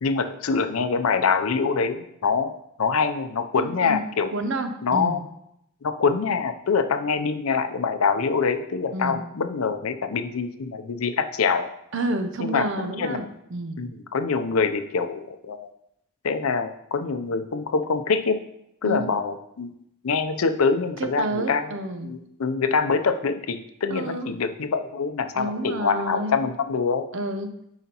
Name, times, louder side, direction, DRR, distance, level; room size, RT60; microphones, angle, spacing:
voice 1, 0.0-4.3 4.8-5.2 5.8-11.7 12.4-13.3 13.8-15.7 16.2-18.4 18.8-19.7 20.0-21.7 22.0-27.0, left 5 dB, 90° left, 8 dB, 0.5 m, -25 dB
voice 2, 3.6-4.0 4.3-5.2 8.9-9.2 11.9-13.2 13.5-13.8 18.8-19.1 21.0-22.1 23.9-24.3 25.3-26.4 27.1-27.5, right 1 dB, 60° right, 7 dB, 0.6 m, -29 dB
9.2 x 4.9 x 2.9 m, 0.79 s
head